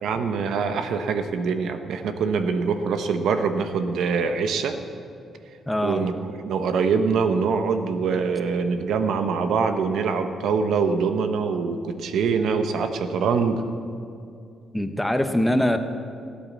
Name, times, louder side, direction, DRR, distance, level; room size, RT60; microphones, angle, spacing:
voice 1, 0.0-4.8 5.8-13.6, right 5 dB, 80° right, 8 dB, 1.0 m, -24 dB
voice 2, 5.7-6.1 14.7-15.8, left 1 dB, 5° left, 7 dB, 1.0 m, -23 dB
16.5 x 8.8 x 7.4 m, 2.5 s
cardioid pair, 100°, 0 cm